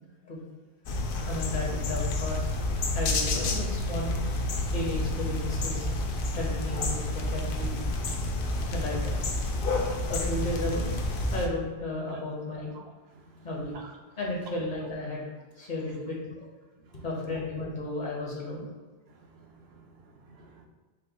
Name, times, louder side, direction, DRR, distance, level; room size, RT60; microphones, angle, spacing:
sound 1, 0.9-11.5, left 2 dB, 60° left, 0.7 m, -30 dB
voice 1, 1.3-2.5 2.9-4.1 4.7-5.9 6.3-7.8 8.7-9.2 10.1-10.9 11.3-12.7 13.4-13.7 14.2-15.2 15.6-16.4 16.9-18.7, left 2 dB, 45° left, -3 dB, 1.0 m, -33 dB
sound 2, 4.0-11.5, right 3 dB, 45° right, 0.5 m, -38 dB
voice 2, 13.1-13.5 13.8-13.9 16.9-17.0 19.1-20.7, right 4 dB, 70° right, 1 dB, 0.8 m, -52 dB
5.2 x 2.1 x 3.9 m, 1.3 s
omnidirectional pair, 1.1 m